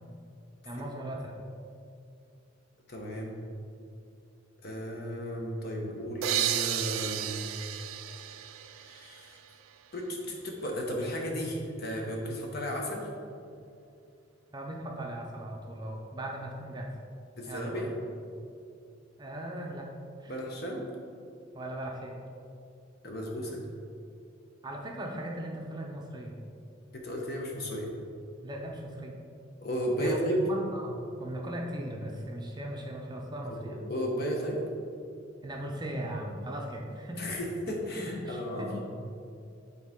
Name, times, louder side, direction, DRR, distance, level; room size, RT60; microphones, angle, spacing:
voice 1, 0.6-1.3 14.5-16.9 17.5-17.9 19.2-19.9 20.2-20.4 21.5-22.2 24.6-26.3 28.4-29.2 30.0-30.2 30.5-33.8 35.4-37.2 38.0-38.7, right 1 dB, 20° right, 0 dB, 0.6 m, -38 dB
voice 2, 2.9-3.3 4.6-7.4 8.7-9.4 9.9-13.1 17.4-17.9 20.3-20.8 23.0-23.6 26.9-27.9 29.6-30.4 33.5-34.6 37.1-38.8, equal, 50° left, 0 dB, 1.0 m, -34 dB
sound 1, 6.2-9.8, right 11 dB, 85° right, 0.4 m, -33 dB
8.6 x 4.0 x 3.6 m, 2.5 s
head